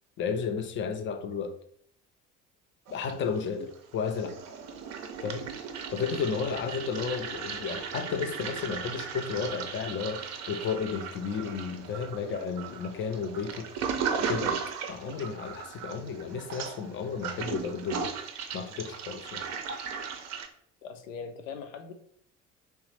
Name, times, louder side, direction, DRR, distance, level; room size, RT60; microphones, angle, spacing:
voice 1, 0.2-1.6 2.9-4.4 5.2-5.5 5.9-14.6 14.9-18.1 18.5-19.4, left 6 dB, 30° left, 0.5 m, -33 dB
Toilet flush, 2.9-3.7 4.0-20.5, right 6 dB, 45° right, 0.6 m, -37 dB
voice 2, 20.8-21.9, left 6 dB, 75° left, 0.5 m, -41 dB
3.2 x 3.1 x 3.1 m
figure-of-eight pair, 55°, 39 cm